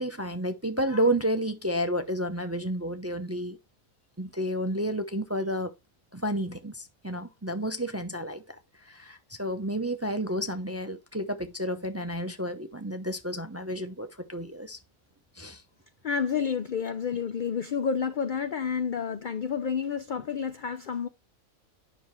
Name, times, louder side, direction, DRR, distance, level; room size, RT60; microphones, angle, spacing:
voice 1, 0.0-3.6 4.2-5.7 6.1-14.8 15.4-15.6, equal, 20° right, 0.4 m, -31 dB
voice 2, 16.0-21.1, left 6 dB, 55° left, 0.5 m, -30 dB
9.5 x 6.0 x 3.1 m
omnidirectional pair, 1.4 m